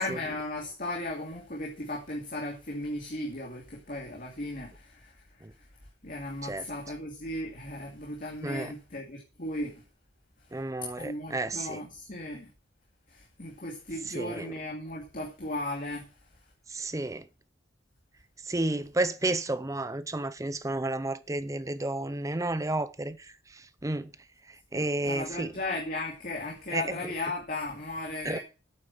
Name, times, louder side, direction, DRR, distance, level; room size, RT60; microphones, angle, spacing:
voice 1, 0.0-5.1 6.0-9.8 11.0-12.5 13.1-16.1 24.7-28.4, left 2 dB, 45° left, 2.4 m, -36 dB
voice 2, 8.4-8.7 10.5-11.8 14.1-14.5 16.7-17.2 18.5-24.1 24.7-25.5 26.7-27.1 28.2-28.4, right 2 dB, 15° right, 0.6 m, -31 dB
8.8 x 8.1 x 7.1 m
head